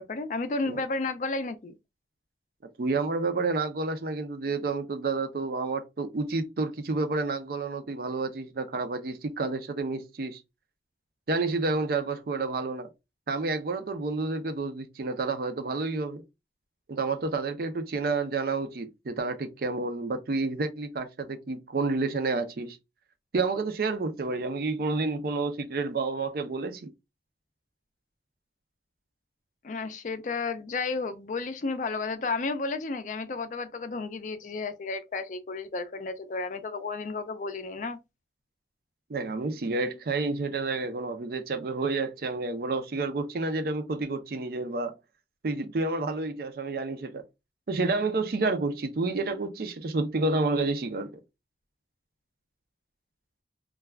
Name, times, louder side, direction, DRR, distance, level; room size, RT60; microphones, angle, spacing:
voice 1, 0.0-1.7 29.6-38.0, left 3 dB, 45° left, 0.4 m, -32 dB
voice 2, 2.8-10.4 11.3-12.9 13.3-16.2 16.9-22.8 23.3-26.9 39.1-44.9 45.4-47.2 47.7-51.1, right 3 dB, 55° right, 0.5 m, -29 dB
2.3 x 2.2 x 3.3 m
head